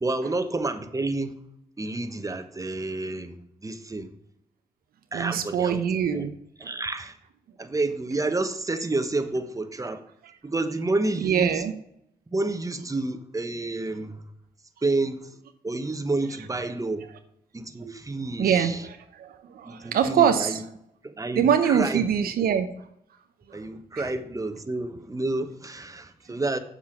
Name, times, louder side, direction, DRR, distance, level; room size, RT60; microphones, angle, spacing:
voice 1, 0.0-1.3 1.8-4.1 5.1-5.8 6.1-6.3 6.6-7.1 7.6-10.0 10.4-11.6 12.3-14.2 14.8-15.3 15.6-17.1 17.5-18.8 19.6-20.6 21.0-22.0 23.5-26.6, right 2 dB, 20° right, 1.1 m, -29 dB
voice 2, 5.1-6.4 11.2-11.7 17.8-17.9 18.4-20.6 21.3-22.7 23.5-23.6, right 8 dB, 70° right, 0.7 m, -24 dB
7.4 x 5.5 x 6.2 m
supercardioid pair, 50°, 16 cm